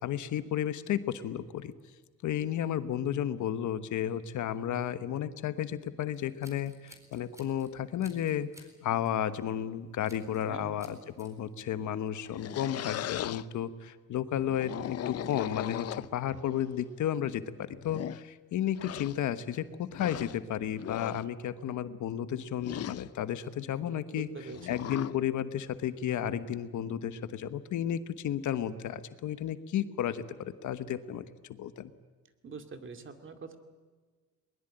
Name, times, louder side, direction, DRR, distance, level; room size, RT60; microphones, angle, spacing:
voice 1, 0.0-1.7 2.2-8.5 8.8-24.3 24.7-31.9, left 10 dB, 75° left, 12 dB, 1.3 m, -33 dB
Scissors, 6.1-7.7 8.0-8.7 9.0-9.3 10.0-10.5 10.8-11.3, equal, 10° right, 4.1 m, -56 dB
voice 2, 10.5-10.9 24.1-24.7 32.4-33.6, right 5 dB, 40° right, 7 dB, 2.4 m, -44 dB
sound 1, 12.1-13.4 14.4-16.4 17.2-17.3 17.8-18.2 18.8-19.2 19.9-20.4 20.8-21.2 22.6-23.1 24.5-25.2, left 12 dB, 55° left, 0.6 m, -38 dB
21.5 x 21.0 x 9.0 m, 1.4 s
cardioid pair, 125°, 30 cm